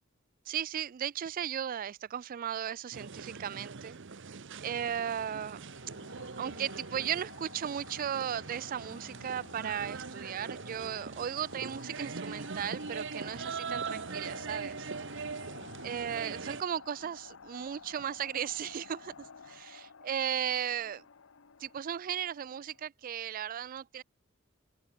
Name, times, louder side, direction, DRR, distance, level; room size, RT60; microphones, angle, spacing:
voice 1, 0.5-4.0 4.6-5.6 6.4-14.9 15.8-21.0 21.6-24.0, right 9 dB, 40° right, 0.3 m, -36 dB
sound 1, 2.9-16.6, right 5 dB, 60° right, 0.9 m, -42 dB
sound 2, 5.1-22.8, left 5 dB, 65° left, 0.8 m, -52 dB
open air
head